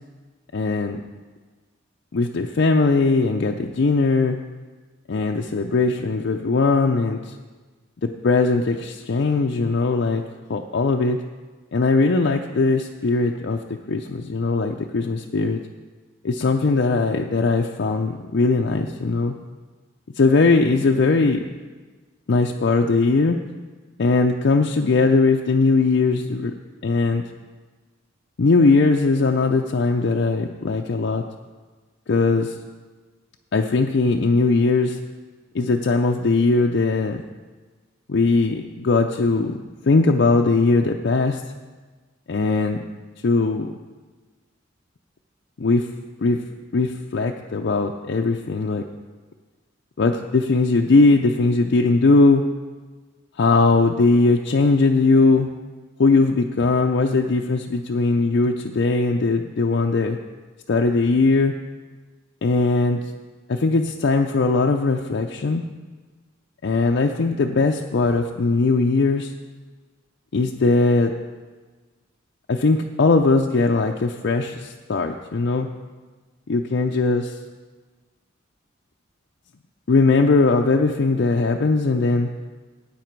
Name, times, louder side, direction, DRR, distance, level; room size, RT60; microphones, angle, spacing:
voice 1, 0.5-1.0 2.1-4.4 5.1-7.3 8.0-10.2 10.5-11.2 11.7-13.6 13.9-15.6 16.2-19.3 20.2-21.4 22.3-23.4 24.0-26.5 26.8-27.2 28.4-31.2 32.1-32.5 33.5-35.0 35.5-37.2 38.1-41.4 42.3-42.8 43.2-43.7 45.6-45.9 46.2-46.4 46.7-48.8 50.0-52.4 53.4-55.5 56.0-60.2 60.7-61.5 62.4-63.0 63.5-65.6 66.6-69.3 70.3-71.1 72.5-75.7 76.5-77.4 79.9-82.3, left 3 dB, 60° left, 2 dB, 0.5 m, -19 dB
12.5 x 9.0 x 4.6 m, 1.3 s
head